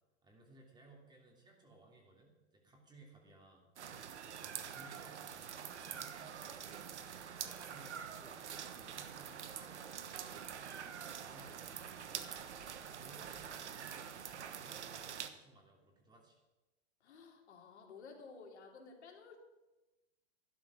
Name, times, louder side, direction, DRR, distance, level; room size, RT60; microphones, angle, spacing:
voice 1, 0.2-3.7 4.2-6.5 7.0-8.4 8.8-12.3 12.8-13.6 13.9-16.4, right 2 dB, 10° right, 1 dB, 2.9 m, -61 dB
sound 1, 3.8-15.3, right 8 dB, 80° right, 1.3 m, -46 dB
voice 2, 17.0-19.4, left 4 dB, 75° left, 1 dB, 3.2 m, -54 dB
12.0 x 11.0 x 6.2 m, 1.0 s
hypercardioid pair, 125°, 34 cm